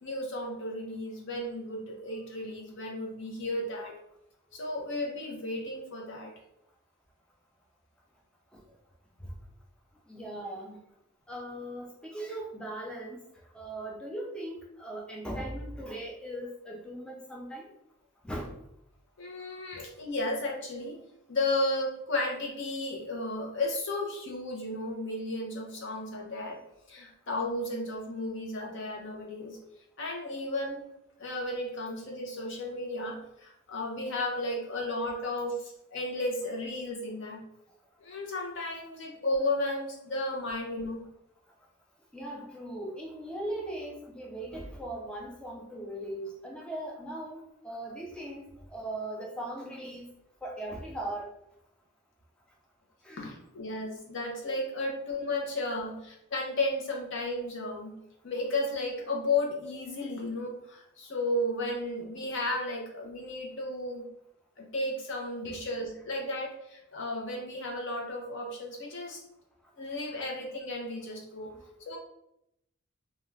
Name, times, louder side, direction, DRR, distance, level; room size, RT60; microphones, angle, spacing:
voice 1, 0.0-3.9 4.5-6.3 19.2-21.0 21.3-26.6 26.9-29.6 30.0-30.8 31.2-37.4 38.0-41.0 53.2-58.0 58.2-64.0 64.6-69.2 69.8-71.5 71.9-72.0, left 2 dB, 60° left, 0 dB, 0.7 m, -33 dB
voice 2, 10.1-10.8 11.3-13.2 13.5-17.7 18.2-18.5 42.1-50.1 50.4-51.3 53.0-53.2 65.4-65.6, right 1 dB, 5° left, -2 dB, 0.3 m, -39 dB
2.4 x 2.3 x 3.1 m, 0.80 s
head